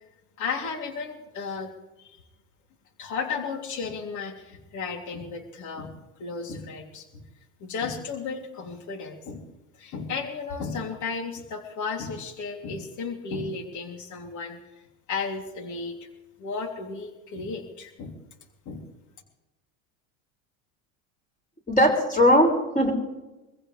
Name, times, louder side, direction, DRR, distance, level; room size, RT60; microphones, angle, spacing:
voice 1, 0.4-1.7 2.0-2.1 3.0-5.9 6.2-7.2 7.6-9.5 9.8-14.6 15.1-16.0 16.4-18.2 18.6-18.9, left 5 dB, 45° left, 3 dB, 3.3 m, -34 dB
voice 2, 21.7-22.9, equal, 20° left, 0 dB, 6.1 m, -19 dB
24.5 x 15.5 x 3.4 m, 1.0 s
supercardioid pair, 110°, 42 cm